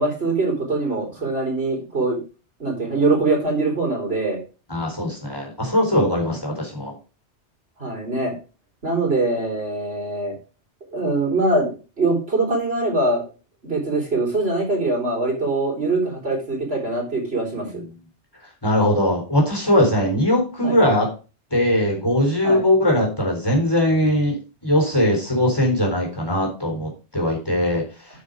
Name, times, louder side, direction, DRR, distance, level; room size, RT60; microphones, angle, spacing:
voice 1, 0.0-2.2 2.6-4.4 7.8-8.3 8.8-10.3 10.9-11.7 12.0-13.2 13.6-17.8 20.6-20.8 22.4-22.6, right 2 dB, 60° right, -1 dB, 4.4 m, -23 dB
voice 2, 4.7-6.9 17.6-17.8 18.6-21.1 21.5-24.4 24.6-27.8, left 1 dB, 20° left, 0 dB, 4.0 m, -20 dB
9.7 x 6.4 x 5.0 m, 0.33 s
omnidirectional pair, 1.2 m